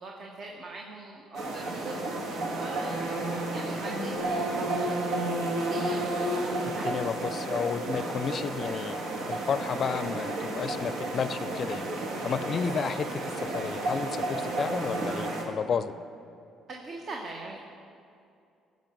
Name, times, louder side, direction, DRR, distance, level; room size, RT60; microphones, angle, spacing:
voice 1, 0.0-3.0 3.5-6.9 8.0-8.2 12.5-12.8 16.7-17.6, right 2 dB, 50° right, 0 dB, 1.0 m, -43 dB
sound 1, 1.3-15.4, right 2 dB, 80° right, 1.5 m, -32 dB
Marimba xylophone / Wood, 3.9-6.6, left 2 dB, 5° left, 1.1 m, -47 dB
voice 2, 6.8-11.9 12.2-13.1 13.4-15.9, left 6 dB, 45° left, 13 dB, 0.4 m, -32 dB
14.5 x 5.3 x 5.3 m, 2.5 s
cardioid pair, 105°, 0 cm